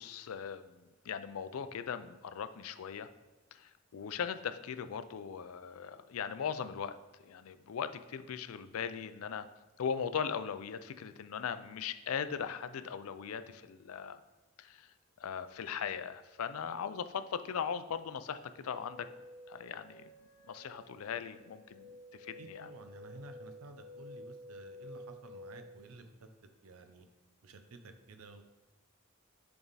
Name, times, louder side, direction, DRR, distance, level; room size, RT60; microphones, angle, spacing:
voice 1, 0.0-3.1 3.5-6.9 7.2-9.5 9.8-14.2 14.6-14.9 15.2-19.1 19.5-20.1 20.5-21.9 22.2-22.7, left 7 dB, 85° left, 11 dB, 0.4 m, -39 dB
sound 1, 18.7-25.8, left 1 dB, 55° left, 1.2 m, -52 dB
voice 2, 22.4-26.3 26.6-27.1 27.4-28.4, right 2 dB, 90° right, 8 dB, 0.6 m, -52 dB
7.1 x 3.5 x 4.0 m, 1.2 s
head